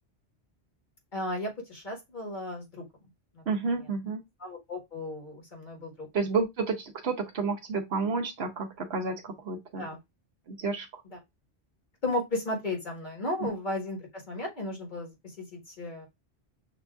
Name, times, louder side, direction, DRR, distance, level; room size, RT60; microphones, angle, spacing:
voice 1, 1.1-2.9 3.3-3.4 4.4-6.1 9.8-10.0 11.1-11.2 12.0-15.1 15.4-16.1, left 1 dB, 45° left, 1.6 m, -34 dB
voice 2, 3.5-4.2 6.1-9.9 10.5-11.0 13.4-13.5, right 4 dB, 75° right, 1.1 m, -30 dB
6.6 x 2.6 x 2.3 m
omnidirectional pair, 1.1 m